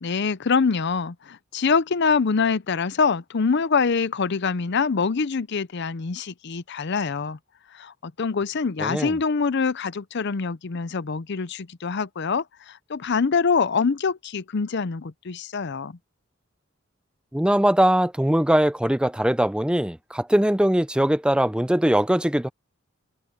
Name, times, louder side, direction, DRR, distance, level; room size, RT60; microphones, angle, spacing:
voice 1, 0.0-7.4 7.7-16.0, left 5 dB, 60° left, 0.6 m, -25 dB
voice 2, 8.8-9.2 17.3-22.5, right 1 dB, 5° right, 0.6 m, -21 dB
head